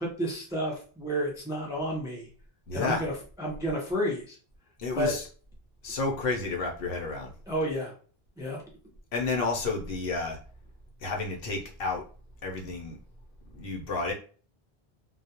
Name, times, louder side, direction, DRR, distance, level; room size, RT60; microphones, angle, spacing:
voice 1, 0.0-2.3 2.7-3.1 3.4-4.4 4.9-5.1 7.5-7.9 8.4-8.6, equal, 5° right, -2 dB, 0.3 m, -31 dB
voice 2, 2.7-3.0 4.8-5.2 5.8-7.3 9.1-10.4 11.0-12.0 12.4-13.0 13.5-14.1, left 3 dB, 70° left, 1 dB, 0.8 m, -31 dB
2.3 x 2.0 x 2.7 m, 0.41 s
omnidirectional pair, 1.0 m